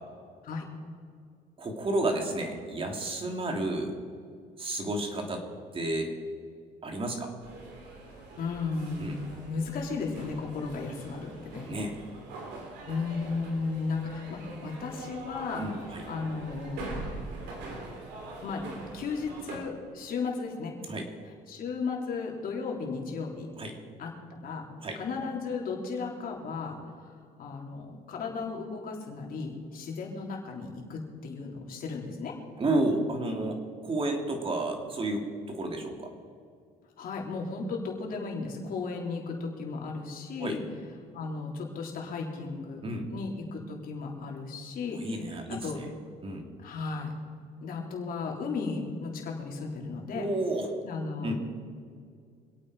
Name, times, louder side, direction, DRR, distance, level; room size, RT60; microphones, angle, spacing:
voice 1, 1.6-4.0 4.6-5.4 5.7-6.1 6.8-7.3 9.0-9.2 11.6-11.9 15.6-16.0 20.9-21.1 23.6-23.8 24.8-25.0 32.6-36.1 40.4-40.6 42.8-43.1 44.9-45.9 46.2-46.5 50.1-50.7 51.2-51.3, right 2 dB, 35° right, 3 dB, 2.9 m, -31 dB
sound 1, 7.4-19.6, right 2 dB, 85° right, 3.4 m, -43 dB
voice 2, 8.4-11.7 12.9-15.6 16.1-17.2 18.4-18.6 18.9-20.7 21.5-23.5 24.0-24.7 25.0-27.1 27.4-32.3 37.0-40.6 41.1-42.8 43.1-45.0 45.5-45.8 46.6-47.1 47.6-50.3 50.8-51.3, left 4 dB, 60° left, 0 dB, 3.6 m, -35 dB
26.0 x 8.8 x 5.0 m, 2.2 s
cardioid pair, 110°, 17 cm